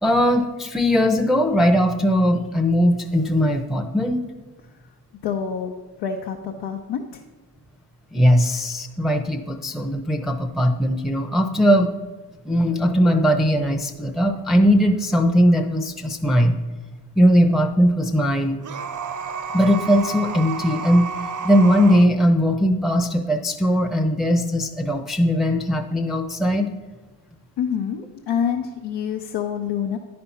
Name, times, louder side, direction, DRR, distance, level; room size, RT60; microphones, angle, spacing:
voice 1, 0.0-4.3 8.1-11.9 12.4-16.6 17.2-18.6 19.5-21.1 21.4-26.7, equal, ahead, 4 dB, 0.6 m, -19 dB
voice 2, 5.2-7.2 27.6-30.0, left 7 dB, 75° left, 1 dB, 0.8 m, -27 dB
sound 1, 18.6-22.1, right 6 dB, 45° right, 0.7 m, -31 dB
10.0 x 4.3 x 5.6 m, 1.3 s
supercardioid pair, 60°, 42 cm